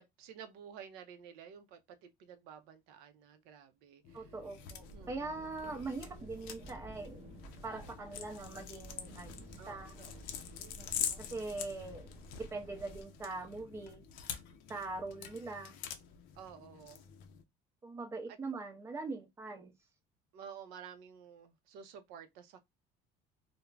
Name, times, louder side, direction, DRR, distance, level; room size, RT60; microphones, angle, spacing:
voice 1, 0.0-4.3 4.9-5.4 9.6-10.1 16.3-17.1 18.3-18.4 20.3-22.6, right 7 dB, 70° right, 0.5 m, -52 dB
sound 1, 4.0-17.4, left 9 dB, 65° left, 0.5 m, -45 dB
voice 2, 4.1-7.2 7.6-9.3 9.7-10.0 11.2-12.1 12.4-14.0 14.7-15.8 17.8-19.7, right 3 dB, 15° right, 0.5 m, -42 dB
sound 2, 4.6-13.0, right 2 dB, 45° right, 0.8 m, -53 dB
2.3 x 2.0 x 3.2 m
cardioid pair, 180°, 17 cm